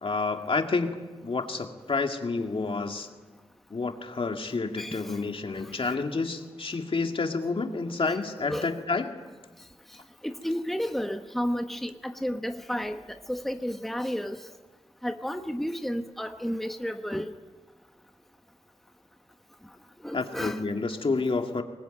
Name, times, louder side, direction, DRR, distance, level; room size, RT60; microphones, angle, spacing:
voice 1, 0.0-3.1 3.7-9.1 20.1-21.6, left 3 dB, 55° left, 4 dB, 2.3 m, -29 dB
voice 2, 4.8-5.1 5.8-6.0 8.1-8.2 8.5-8.7 10.2-13.0 13.3-14.4 15.0-17.3 20.0-20.6, equal, ahead, 7 dB, 1.1 m, -32 dB
25.0 x 20.5 x 9.1 m, 1.3 s
wide cardioid pair, 90°, 11 cm